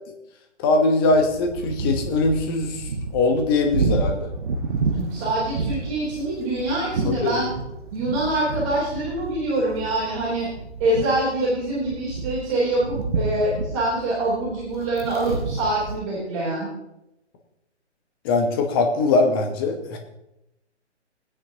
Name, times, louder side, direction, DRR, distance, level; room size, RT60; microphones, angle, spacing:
voice 1, 0.6-4.3 7.0-7.4 18.2-20.0, left 3 dB, 20° left, 4 dB, 1.1 m, -21 dB
sound 1, 1.1-16.0, right 4 dB, 45° right, 1.3 m, -30 dB
voice 2, 4.9-7.5 7.9-10.5 10.8-16.7, right 1 dB, 25° right, -7 dB, 3.5 m, -25 dB
19.0 x 9.9 x 2.9 m, 0.87 s
figure-of-eight pair, 140°, 35 cm